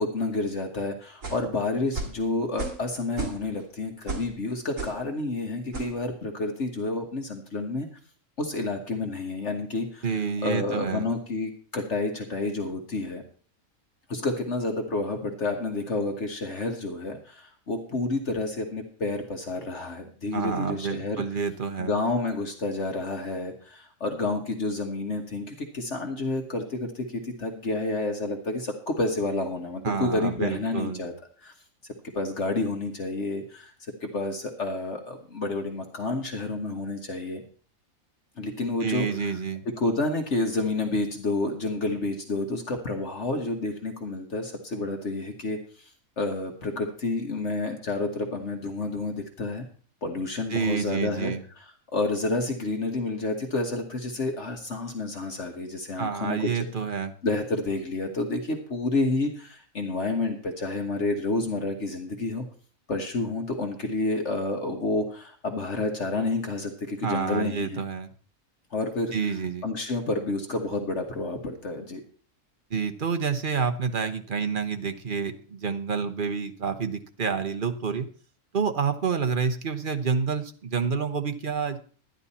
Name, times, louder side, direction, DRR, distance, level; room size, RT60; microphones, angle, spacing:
voice 1, 0.0-7.9 8.4-10.1 10.4-13.2 14.1-21.2 21.8-31.1 31.4-31.5 32.1-37.4 38.4-39.4 39.6-45.9 46.2-49.6 50.0-56.6 57.2-62.5 62.9-67.8 68.7-69.1 69.6-72.0, left 2 dB, 55° left, 4 dB, 1.6 m, -29 dB
sound 1, 1.2-1.5 1.9-2.2 2.6-2.9 3.1-3.6 4.1-4.3 4.8-5.0 5.7-5.9, right 3 dB, 65° right, 2.9 m, -33 dB
voice 2, 10.0-11.1 20.3-21.9 29.8-31.0 38.8-39.6 50.5-51.4 56.0-57.1 67.0-68.1 69.1-69.6 72.7-78.1 78.5-81.8, right 5 dB, 40° right, 7 dB, 1.1 m, -28 dB
12.0 x 10.5 x 4.2 m, 0.42 s
omnidirectional pair, 1.5 m